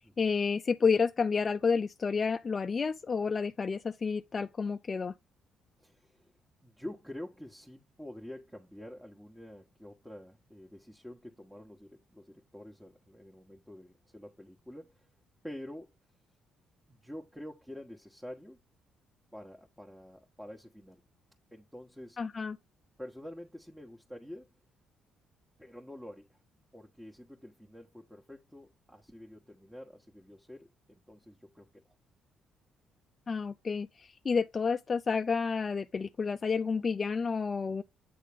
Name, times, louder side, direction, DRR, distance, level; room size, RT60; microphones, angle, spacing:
voice 1, 0.2-5.1 22.2-22.6 33.3-37.8, left 5 dB, 40° left, 0.4 m, -30 dB
voice 2, 5.8-6.3 6.6-15.1 15.4-15.9 16.9-18.6 19.3-21.1 21.5-22.2 23.0-24.5 25.6-26.4 26.7-31.8, left 1 dB, 5° right, 1.2 m, -47 dB
8.5 x 3.6 x 3.5 m
supercardioid pair, 60°, 0 cm